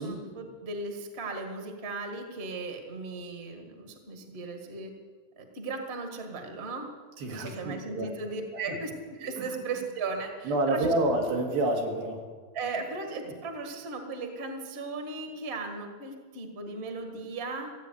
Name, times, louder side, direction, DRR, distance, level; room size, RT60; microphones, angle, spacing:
voice 1, 0.0-4.9 5.4-6.9 7.3-8.9 9.2-10.9 12.5-17.7, right 3 dB, 35° right, 4 dB, 1.1 m, -37 dB
voice 2, 7.2-8.1 8.5-8.8 9.4-9.6 10.5-12.3, right 1 dB, 90° right, 1 dB, 3.9 m, -29 dB
15.5 x 8.4 x 9.3 m, 1.5 s
omnidirectional pair, 4.1 m